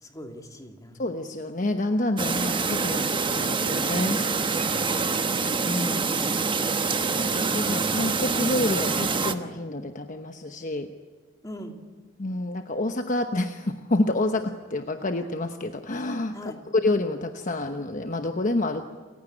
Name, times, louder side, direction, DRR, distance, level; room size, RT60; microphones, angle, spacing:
voice 1, 0.0-1.0 4.8-5.4 11.4-11.8 16.3-16.6, equal, 20° left, 3 dB, 2.5 m, -41 dB
voice 2, 1.0-4.2 4.9-5.3 5.6-6.1 7.3-10.9 12.2-16.3 16.7-18.8, left 2 dB, 45° left, 6 dB, 1.0 m, -28 dB
Chirp tweet, 2.2-9.3, right 4 dB, 25° right, 1.1 m, -26 dB
28.5 x 16.0 x 10.0 m, 1.4 s
head